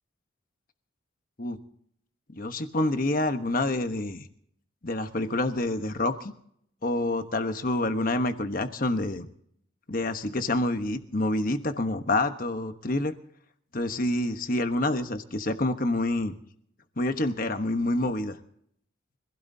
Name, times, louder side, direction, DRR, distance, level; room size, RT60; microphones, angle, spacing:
voice 1, 2.3-4.3 4.8-6.3 6.8-9.3 9.9-13.1 13.7-16.4 17.0-18.4, left 2 dB, 40° left, 8 dB, 1.1 m, -27 dB
25.5 x 16.5 x 2.8 m, 0.68 s
head